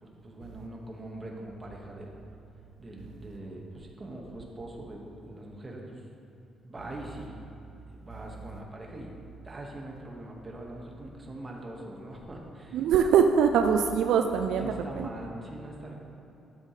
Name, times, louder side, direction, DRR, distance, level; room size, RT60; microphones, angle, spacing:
voice 1, 0.0-2.1 2.8-6.0 6.6-7.3 7.9-9.1 9.4-12.9 14.6-15.9, right 1 dB, 25° right, -1 dB, 1.6 m, -42 dB
voice 2, 12.7-15.1, right 7 dB, 80° right, 6 dB, 0.4 m, -23 dB
12.0 x 7.7 x 3.2 m, 2.9 s
cardioid pair, 90°, 0 cm